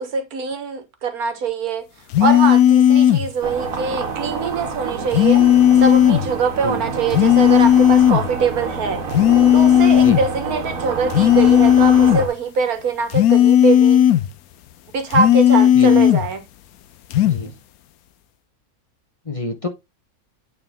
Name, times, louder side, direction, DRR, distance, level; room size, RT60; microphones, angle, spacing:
voice 1, 0.0-1.9 2.2-5.4 5.8-9.0 9.5-14.0 14.9-16.4, right 5 dB, 90° right, 1.7 m, -23 dB
sound 1, 2.1-3.3 5.1-6.3 7.1-8.3 9.1-10.3 11.1-12.3 13.1-14.3 15.1-16.3 17.1-17.4, left 11 dB, 85° left, 1.1 m, -13 dB
sound 2, 3.4-12.3, right 4 dB, 70° right, 1.6 m, -28 dB
voice 2, 15.7-16.1 17.2-17.5 19.2-19.7, left 2 dB, 25° left, 1.1 m, -28 dB
8.8 x 4.1 x 3.5 m
omnidirectional pair, 1.5 m